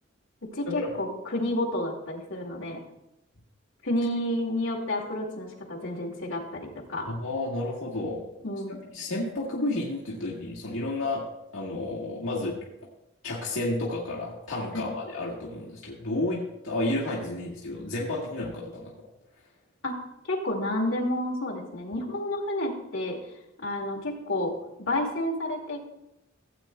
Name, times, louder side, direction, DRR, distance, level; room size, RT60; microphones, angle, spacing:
voice 1, 0.5-2.8 3.8-7.1 8.4-8.8 14.7-14.9 19.8-20.0 20.3-23.2 23.6-25.8, left 1 dB, 65° left, -2 dB, 2.1 m, -30 dB
voice 2, 7.1-8.2 8.9-11.2 11.5-12.6 13.2-18.9, left 2 dB, 80° left, -5 dB, 1.6 m, -31 dB
16.0 x 8.3 x 2.2 m, 0.88 s
head